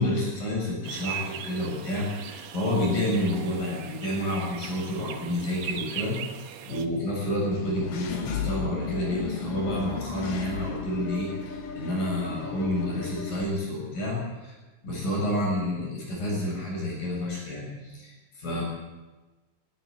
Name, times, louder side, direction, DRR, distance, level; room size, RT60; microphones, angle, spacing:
voice 1, 0.0-6.3 6.7-14.6 14.8-18.6, left 1 dB, 45° left, -3 dB, 9.2 m, -29 dB
sound 1, 0.8-6.9, right 10 dB, 80° right, 3.5 m, -39 dB
Engine / Mechanisms, 7.5-13.4, left 5 dB, 85° left, 1.3 m, -35 dB
21.5 x 13.0 x 9.1 m, 1.2 s
omnidirectional pair, 5.3 m